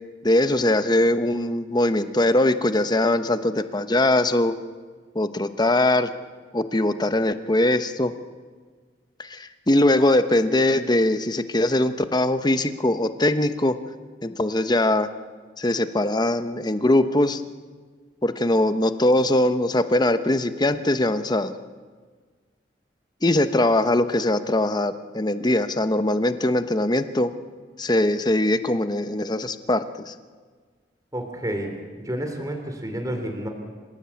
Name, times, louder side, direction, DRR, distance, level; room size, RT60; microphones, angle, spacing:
voice 1, 0.2-4.5 5.1-6.1 6.5-8.1 9.2-13.8 14.2-15.1 15.6-17.4 18.2-21.5 23.2-27.3 27.8-30.1, left 1 dB, 25° left, 10 dB, 1.0 m, -21 dB
voice 2, 31.1-33.5, right 1 dB, 20° right, 4 dB, 3.2 m, -30 dB
27.5 x 16.5 x 8.7 m, 1.5 s
head